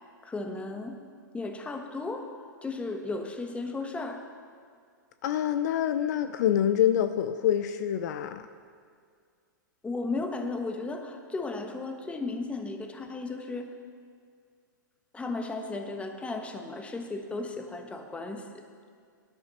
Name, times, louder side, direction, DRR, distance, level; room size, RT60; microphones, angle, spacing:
voice 1, 0.2-1.0 1.3-2.3 2.6-4.2 9.8-13.7 15.1-18.6, left 3 dB, 10° left, 5 dB, 1.1 m, -35 dB
voice 2, 5.2-8.4, left 10 dB, 55° left, 10 dB, 0.5 m, -26 dB
19.5 x 11.0 x 3.0 m, 2.1 s
hypercardioid pair, 110°, 11 cm